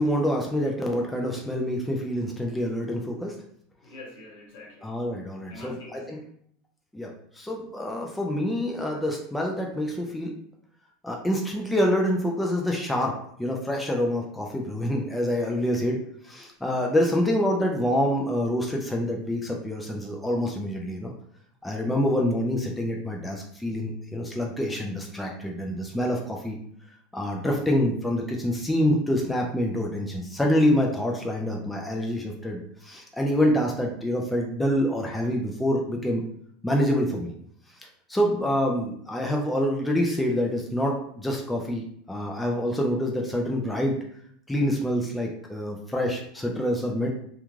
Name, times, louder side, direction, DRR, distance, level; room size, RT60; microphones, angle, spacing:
voice 1, 0.0-3.3 4.8-6.2 6.9-10.3 11.0-21.1 21.6-26.6 27.1-36.2 36.6-37.3 38.1-44.0 44.5-47.1, equal, 5° left, 0 dB, 0.3 m, -26 dB
voice 2, 3.8-5.0 5.5-6.3, left 2 dB, 75° left, -2 dB, 1.1 m, -45 dB
2.3 x 2.3 x 3.0 m, 0.65 s
supercardioid pair, 145°, 0 cm